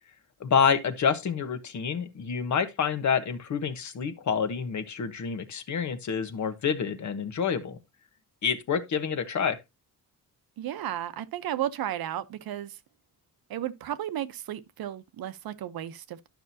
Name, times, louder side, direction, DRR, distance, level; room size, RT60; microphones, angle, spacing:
voice 1, 0.4-7.8 8.4-9.6, left 6 dB, 50° left, 1.1 m, -28 dB
voice 2, 10.6-12.8 13.5-16.3, right 11 dB, 70° right, 0.8 m, -34 dB
12.0 x 6.1 x 2.7 m
wide cardioid pair, 170°, 37 cm